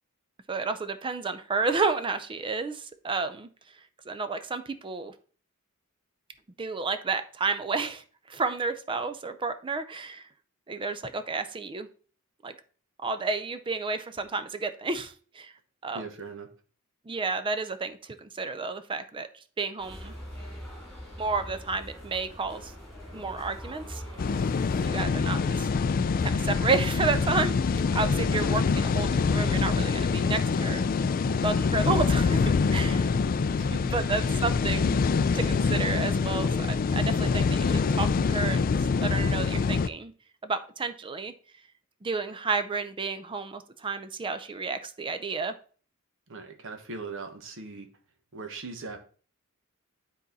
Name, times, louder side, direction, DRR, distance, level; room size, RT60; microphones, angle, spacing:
voice 1, 0.5-3.5 4.1-5.1 6.6-10.3 10.7-11.9 12.4-12.5 13.0-15.5 15.8-16.0 17.1-20.1 21.2-22.7 23.1-24.0 24.8-25.7 26.2-27.6 27.9-30.9 31.3-33.1 33.8-35.0 35.3-40.1 40.4-41.3 42.0-45.5, right 4 dB, 20° right, 10 dB, 0.4 m, -31 dB
voice 2, 15.9-16.5 33.5-33.8 46.3-47.9 48.3-49.0, right 3 dB, 60° right, 7 dB, 1.2 m, -39 dB
sound 1, 19.8-25.0, equal, ahead, 3.0 m, -43 dB
sound 2, 24.2-39.9, left 5 dB, 40° left, 0.3 m, -25 dB
9.7 x 4.1 x 4.0 m, 0.41 s
head